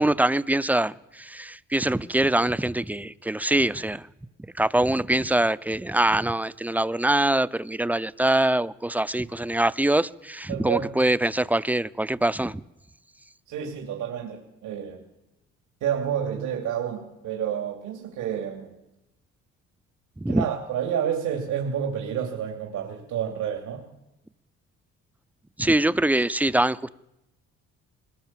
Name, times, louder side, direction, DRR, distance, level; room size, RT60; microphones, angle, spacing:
voice 1, 0.0-4.1 4.5-12.6 20.2-20.5 25.6-26.9, right 1 dB, 5° right, 0.7 m, -24 dB
voice 2, 10.5-11.0 13.5-15.0 15.8-18.7 20.3-23.9, right 8 dB, 85° right, 2.9 m, -29 dB
20.5 x 20.0 x 7.5 m
cardioid pair, 90°, 30 cm